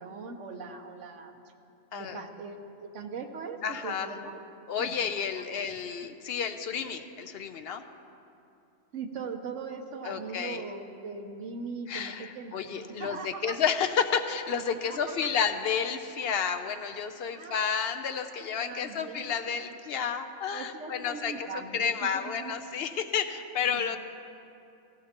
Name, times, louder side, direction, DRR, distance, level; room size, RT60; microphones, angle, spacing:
voice 1, 0.0-1.3 1.9-4.4 4.8-4.9 5.4-5.6 8.9-13.6 14.9-15.5 17.3-17.8 18.6-19.4 20.5-22.6 23.6-23.8, right 4 dB, 70° right, 4 dB, 1.2 m, -40 dB
voice 2, 3.6-4.1 4.7-7.8 10.0-10.6 11.9-24.0, left 7 dB, 60° left, 7 dB, 0.8 m, -31 dB
16.5 x 15.5 x 2.9 m, 2.7 s
omnidirectional pair, 1.3 m